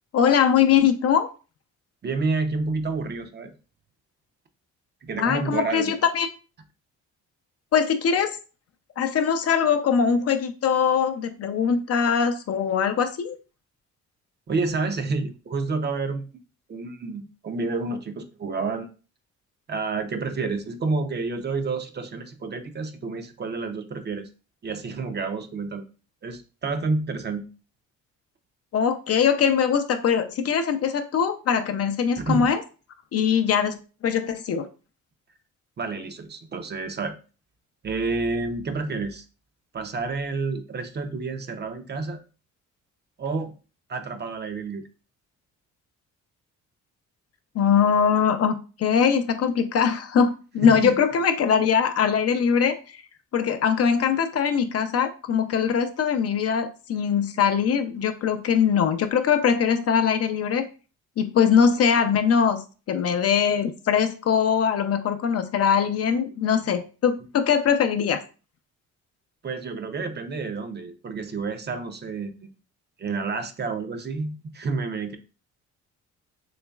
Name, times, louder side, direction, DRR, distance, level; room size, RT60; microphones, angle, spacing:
voice 1, 0.1-1.3 5.2-6.3 7.7-8.4 9.0-13.4 28.7-32.6 33.1-33.8 34.0-34.7 47.5-53.0 53.3-60.7 61.2-62.6 62.9-68.2, left 7 dB, 55° left, 8 dB, 0.5 m, -22 dB
voice 2, 2.0-3.5 5.0-5.9 14.5-16.3 16.7-18.9 19.7-24.3 24.6-25.8 26.2-27.4 32.2-32.5 35.8-37.2 37.8-39.2 39.7-42.2 43.2-43.5 43.9-44.8 50.6-50.9 69.4-72.5 73.0-75.2, right 3 dB, 35° right, 7 dB, 0.6 m, -29 dB
4.0 x 3.0 x 2.3 m, 0.35 s
cardioid pair, 90°, 30 cm